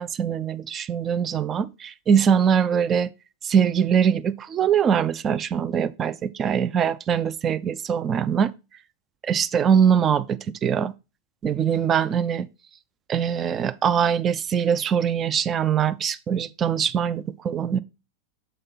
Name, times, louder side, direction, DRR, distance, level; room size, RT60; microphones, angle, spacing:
voice 1, 0.0-3.1 3.4-8.5 9.2-10.9 11.4-12.5 13.1-17.8, right 8 dB, 25° right, 0.5 m, -22 dB
7.1 x 3.3 x 5.5 m
figure-of-eight pair, 90°, 0 cm